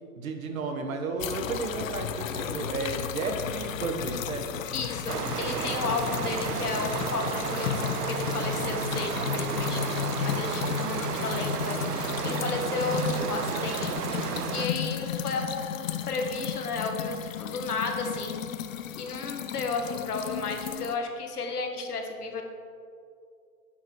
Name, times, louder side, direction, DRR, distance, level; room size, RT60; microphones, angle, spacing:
voice 1, 0.2-4.7 10.7-11.1, right 3 dB, 65° right, 5 dB, 1.3 m, -33 dB
sound 1, 1.2-21.0, left 9 dB, 60° left, 0.6 m, -34 dB
voice 2, 4.7-18.5 19.0-22.4, left 4 dB, 80° left, 3 dB, 1.6 m, -33 dB
sound 2, 5.1-14.7, right 9 dB, 85° right, 0.5 m, -33 dB
10.0 x 5.8 x 4.6 m, 2.4 s
hypercardioid pair, 130°, 45 cm